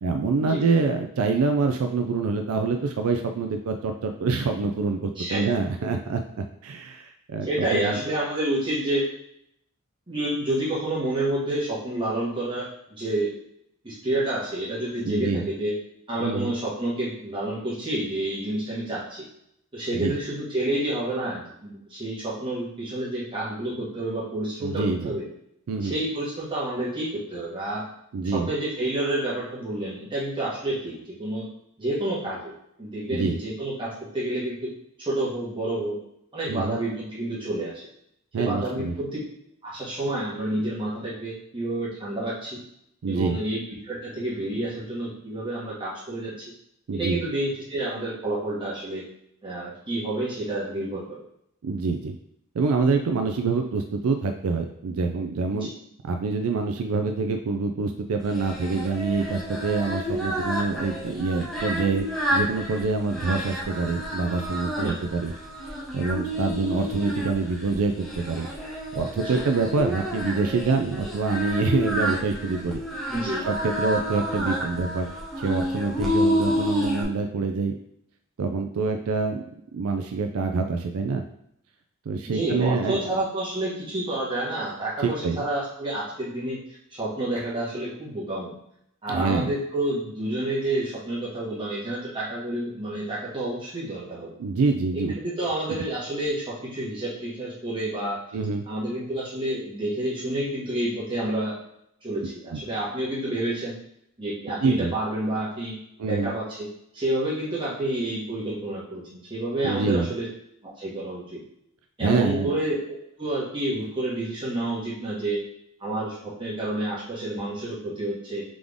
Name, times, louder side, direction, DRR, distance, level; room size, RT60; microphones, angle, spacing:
voice 1, 0.0-6.2 6.6-8.0 15.0-15.5 16.2-16.5 19.9-20.1 24.6-25.2 25.7-26.0 28.1-28.5 33.1-33.4 36.5-36.8 38.3-38.9 43.0-43.4 46.9-47.2 51.6-52.2 52.5-55.7 56.0-62.0 62.3-65.3 65.6-68.5 68.9-72.8 73.5-75.1 75.4-77.7 78.4-79.4 79.7-81.2 82.1-83.2 85.0-85.4 89.1-89.5 94.4-95.1 98.3-98.6 102.5-102.6 104.6-104.9 106.0-106.3 109.6-110.1 112.0-112.5, right 4 dB, 75° right, 5 dB, 0.4 m, -26 dB
voice 2, 7.4-9.0 10.1-12.6 13.0-13.3 13.8-15.7 16.1-19.2 19.7-25.2 25.8-27.8 28.2-31.5 31.8-32.5 32.8-34.7 35.0-36.0 36.3-37.9 38.4-39.1 39.6-42.6 43.1-46.5 46.9-49.0 49.4-51.0 55.5-55.7 64.7-65.0 69.2-69.4 73.1-73.5 82.3-88.5 89.0-94.3 95.1-98.1 98.7-101.5 102.0-103.7 104.2-105.8 106.0-106.7 106.9-109.0 109.3-110.3 110.6-111.4 112.0-115.4 115.8-118.4, right 1 dB, 25° right, -7 dB, 1.5 m, -29 dB
Singing, 58.3-77.0, equal, ahead, 0.8 m, -30 dB
3.8 x 3.5 x 3.5 m, 0.73 s
head